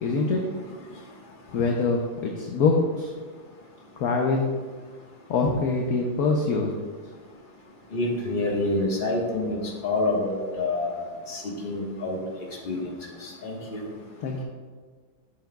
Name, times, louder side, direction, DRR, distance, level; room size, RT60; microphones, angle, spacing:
voice 1, 0.0-0.5 1.5-3.1 4.0-4.5 5.3-6.7 14.2-14.4, left 3 dB, 65° left, 1 dB, 1.0 m, -24 dB
voice 2, 7.9-11.0 11.3-12.2 12.6-12.9 13.2-13.8, left 2 dB, 30° left, -2 dB, 1.4 m, -27 dB
11.5 x 6.9 x 2.3 m, 1.5 s
omnidirectional pair, 2.1 m